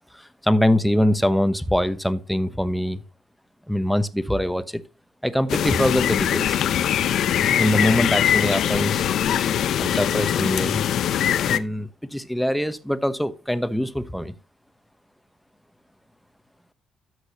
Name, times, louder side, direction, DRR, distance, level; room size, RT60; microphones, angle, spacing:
voice 1, 0.1-3.0 3.7-4.8 5.2-6.6 7.0-9.1 9.8-10.8 11.3-14.3, equal, ahead, 0.9 m, -23 dB
sound 1, 5.5-11.6, left 10 dB, 70° left, 0.6 m, -22 dB
13.0 x 6.2 x 2.8 m
cardioid pair, 90°, 0 cm